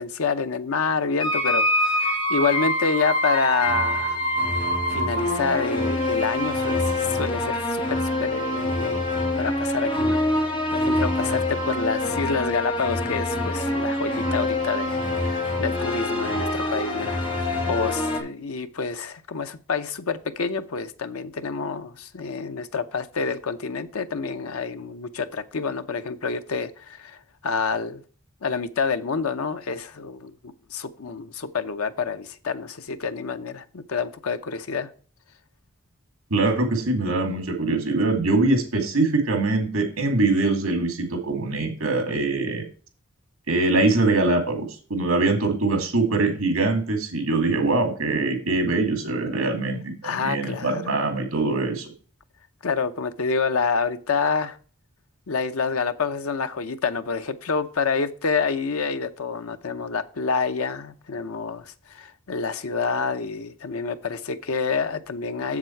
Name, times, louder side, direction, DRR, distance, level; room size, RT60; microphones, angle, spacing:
voice 1, 0.0-4.2 4.9-28.0 28.4-34.9 50.0-50.8 52.6-54.6 55.3-65.6, left 5 dB, 90° left, 0.7 m, -28 dB
sound 1, 1.2-18.2, left 1 dB, 25° left, 2.4 m, -25 dB
voice 2, 36.3-42.6 43.5-51.9, right 2 dB, 75° right, 2.4 m, -23 dB
7.3 x 7.2 x 4.5 m
head